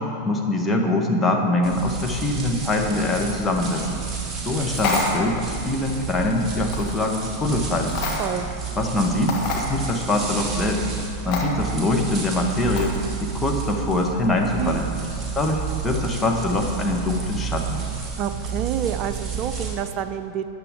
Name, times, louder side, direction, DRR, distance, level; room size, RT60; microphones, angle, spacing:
voice 1, 0.0-4.0 4.4-8.0 8.8-10.9 11.2-12.9 13.2-14.9 15.3-17.8, left 2 dB, 10° left, 1 dB, 1.4 m, -23 dB
sound 1, 1.6-19.7, right 6 dB, 15° right, 2.5 m, -31 dB
sound 2, 4.7-5.4 6.7-6.9 7.9-8.5 8.9-9.0 9.3-9.7 11.3-11.5 12.8-13.0, left 4 dB, 40° left, 1.9 m, -27 dB
voice 2, 18.2-20.5, right 9 dB, 40° right, 10 dB, 0.6 m, -28 dB
14.0 x 9.6 x 3.8 m, 2.6 s
figure-of-eight pair, 90°, 0 cm